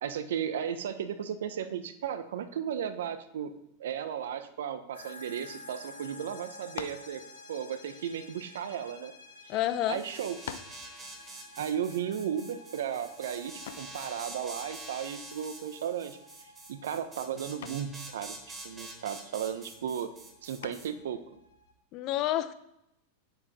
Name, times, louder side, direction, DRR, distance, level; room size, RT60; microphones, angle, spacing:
voice 1, 0.0-3.5 3.8-7.2 7.5-9.1 9.4-9.5 9.9-10.4 11.6-16.2 16.7-18.3 18.6-20.1 20.4-21.2, right 8 dB, 75° right, 10 dB, 1.1 m, -35 dB
sound 1, 4.9-21.7, left 2 dB, 90° left, 2.4 m, -52 dB
sound 2, 6.7-7.1 8.1-9.3 9.9-10.0 10.5-10.9 13.7-14.0 15.9-16.3 16.6-17.0 17.6-17.9 20.6-21.1, left 9 dB, 70° left, 0.8 m, -43 dB
voice 2, 9.5-10.0 21.9-22.5, left 13 dB, 45° left, 12 dB, 0.9 m, -29 dB
sound 3, 9.9-20.9, right 2 dB, 20° right, 3.4 m, -46 dB
9.5 x 8.0 x 4.4 m, 0.82 s
hypercardioid pair, 100°, 0 cm